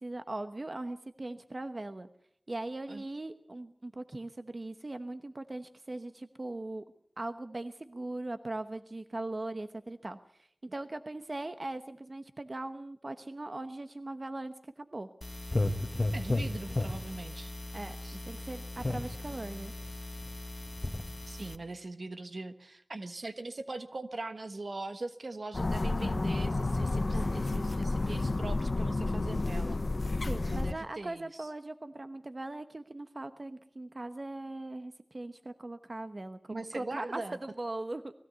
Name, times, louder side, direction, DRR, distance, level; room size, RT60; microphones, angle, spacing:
voice 1, 0.0-2.1 2.5-6.8 7.2-15.1 17.7-18.0 18.2-19.7 27.1-27.3 30.3-38.1, right 2 dB, 50° right, 9 dB, 1.0 m, -40 dB
sound 1, 15.2-21.6, left 2 dB, 40° left, 1.5 m, -35 dB
voice 2, 16.1-17.5 18.0-18.2 21.3-29.8 30.4-31.5 36.5-37.4, right 2 dB, 75° right, 9 dB, 1.3 m, -41 dB
sound 2, 25.5-30.7, left 2 dB, 65° left, 0.8 m, -30 dB
20.5 x 16.0 x 8.2 m, 0.68 s
wide cardioid pair, 60°, 0 cm